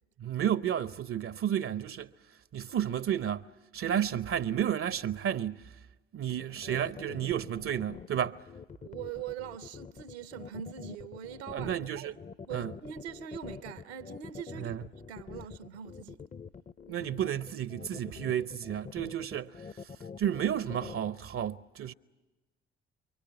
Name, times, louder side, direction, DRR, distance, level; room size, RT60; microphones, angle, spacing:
voice 1, 0.2-2.1 2.5-3.5 3.7-5.6 6.1-8.4 11.5-12.2 12.5-12.7 14.6-14.8 16.9-19.9 20.2-21.9, right 10 dB, 40° right, 0.7 m, -32 dB
sound 1, 6.4-21.1, left 5 dB, 25° left, 0.7 m, -45 dB
voice 2, 8.8-12.1 12.5-14.8 15.1-16.2, right 9 dB, 75° right, 1.0 m, -42 dB
29.0 x 24.0 x 5.8 m
figure-of-eight pair, 45°, 33 cm